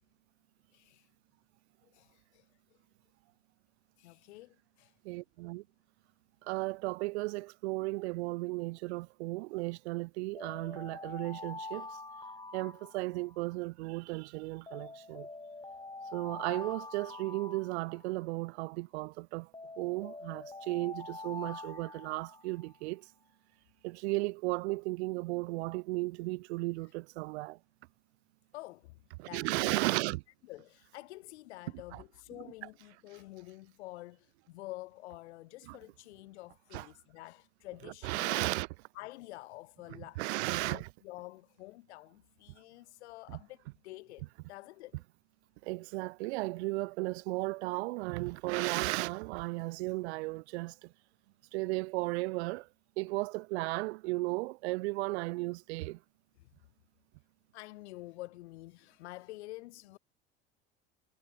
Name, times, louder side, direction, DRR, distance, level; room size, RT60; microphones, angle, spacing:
voice 1, 0.7-1.1 1.9-2.5 4.0-4.9 26.8-26.9 28.5-28.9 29.2-29.8 30.5-38.5 38.9-40.2 40.5-45.0 56.4-56.5 57.5-60.0, left 19 dB, 80° left, 2.5 m, -48 dB
voice 2, 5.0-5.6 6.4-11.9 12.5-15.3 16.1-19.5 19.8-23.0 23.8-27.6 29.2-30.2 31.9-32.0 35.7-35.8 36.7-36.9 38.0-38.7 40.2-40.9 43.3-43.4 45.6-50.9 51.5-52.7 53.0-56.0, right 23 dB, 75° right, 2.0 m, -35 dB
sound 1, 10.3-13.5 14.7-18.4 19.5-22.8, left 3 dB, 15° left, 6.3 m, -45 dB
hypercardioid pair, 75°, 33 cm